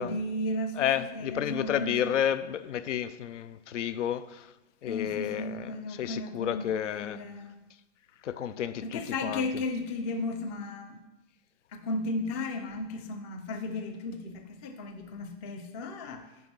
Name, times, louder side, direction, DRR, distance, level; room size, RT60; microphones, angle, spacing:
voice 1, 0.0-2.1 4.9-7.6 8.8-11.0 11.7-16.2, left 2 dB, 15° left, 0.3 m, -35 dB
voice 2, 0.8-4.5 4.8-7.2 8.2-9.4, left 10 dB, 85° left, 0.7 m, -31 dB
9.3 x 5.2 x 6.1 m
hypercardioid pair, 150°, 35 cm